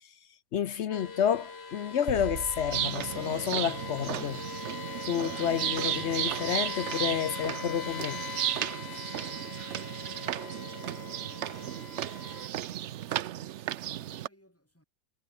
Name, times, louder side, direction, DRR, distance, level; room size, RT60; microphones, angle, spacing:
voice 1, 0.5-4.4 5.0-8.2 8.9-9.0, left 9 dB, 60° left, 0.7 m, -30 dB
sound 1, 0.9-12.5, left 4 dB, 35° left, 2.0 m, -41 dB
sound 2, 2.1-4.6, right 6 dB, 40° right, 1.5 m, -42 dB
sound 3, 2.7-14.3, right 12 dB, 90° right, 0.6 m, -34 dB
voice 2, 9.1-13.0 13.3-14.8, equal, 5° left, 6.2 m, -62 dB
omnidirectional pair, 1.9 m